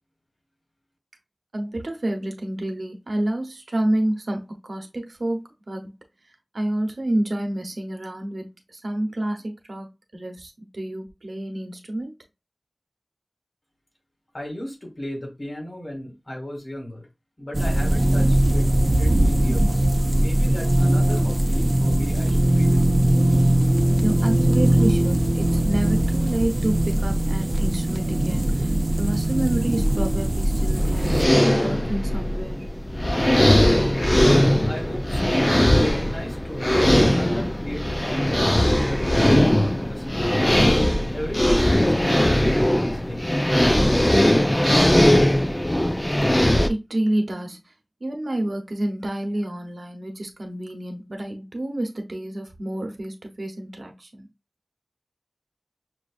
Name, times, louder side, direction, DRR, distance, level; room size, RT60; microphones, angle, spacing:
voice 1, 1.5-5.9 6.5-9.9 10.1-12.1 24.0-31.1 31.6-32.7 46.7-47.6 48.0-54.3, right 1 dB, 85° right, 0.8 m, -28 dB
voice 2, 14.3-17.1 17.4-18.7 19.0-19.9 20.1-23.0 34.7-40.4 41.1-43.5, left 1 dB, 55° left, 2.3 m, -35 dB
sound 1, 17.5-31.3, right 1 dB, 40° right, 0.6 m, -20 dB
sound 2, 30.8-46.7, left 1 dB, 20° left, 0.5 m, -19 dB
6.2 x 2.5 x 2.4 m
wide cardioid pair, 40°, 0 cm